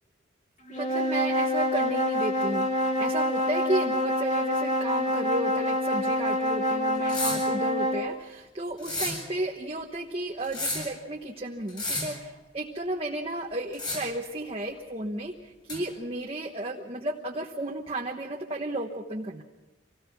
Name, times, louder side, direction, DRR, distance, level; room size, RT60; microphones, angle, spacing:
sound 1, 0.7-8.1, left 1 dB, 40° left, 2.4 m, -26 dB
voice 1, 0.7-19.4, right 1 dB, 30° right, 1 dB, 1.2 m, -33 dB
sound 2, 7.1-7.5 8.8-9.2 10.4-10.9 11.7-12.2 13.7-14.2 15.7-15.8, left 2 dB, 25° left, 7.3 m, -31 dB
25.5 x 18.5 x 5.9 m, 1.1 s
head